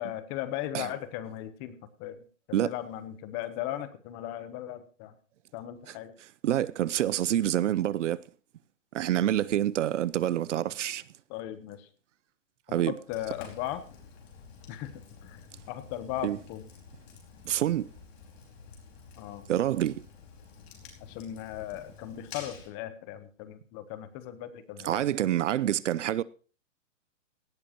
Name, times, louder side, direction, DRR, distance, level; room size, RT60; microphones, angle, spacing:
voice 1, 0.0-5.1 5.5-6.1 11.3-11.9 12.7-13.8 14.7-14.9 15.2-16.7 19.2-19.4 21.0-25.1, left 12 dB, 25° left, 1.0 m, -37 dB
voice 2, 6.4-8.2 8.9-11.0 12.7-12.9 16.2-16.4 17.4-17.9 19.5-20.0 24.8-26.2, right 12 dB, 65° right, 0.7 m, -27 dB
Fire, 13.1-22.7, left 5 dB, 50° left, 5.0 m, -50 dB
17.5 x 12.0 x 3.0 m
hypercardioid pair, 150°, 38 cm